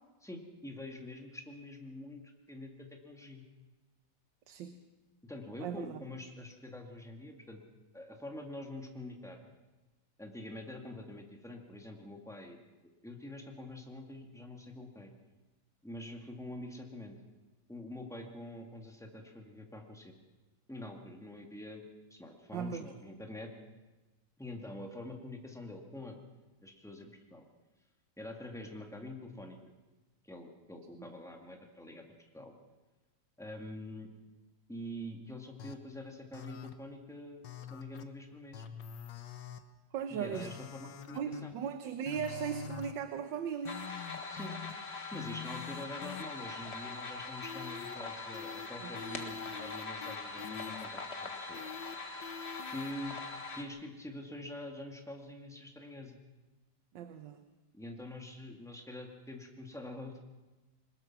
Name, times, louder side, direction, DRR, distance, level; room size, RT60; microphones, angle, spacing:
voice 1, 0.2-3.4 5.2-7.6 7.9-9.5 10.2-12.6 12.8-15.1 15.8-17.2 17.7-20.1 20.7-21.8 22.1-23.5 24.4-26.2 26.6-27.5 28.2-29.6 30.3-32.0 32.3-32.6 33.4-34.1 34.7-37.4 37.7-38.6 40.1-41.5 44.3-44.6 45.1-51.7 52.7-53.2 53.5-56.2 57.7-60.2, left 1 dB, ahead, 2 dB, 2.1 m, -45 dB
voice 2, 4.5-4.8 5.6-6.0 22.5-22.9 39.9-40.6 41.1-43.8 48.8-48.9 56.9-57.4, right 7 dB, 90° right, 9 dB, 1.6 m, -38 dB
sound 1, 35.6-35.7 36.3-36.7 37.4-38.0 38.5-39.6 40.3-41.5 42.1-42.9 43.7-44.7 45.1-46.2 47.4-47.9 48.3-48.7 49.0-50.9 51.5-51.9 52.2-52.9, left 8 dB, 75° left, 1.7 m, -45 dB
sound 2, 43.7-53.6, left 3 dB, 40° left, 1.7 m, -42 dB
21.5 x 20.0 x 6.1 m, 1.1 s
omnidirectional pair, 1.9 m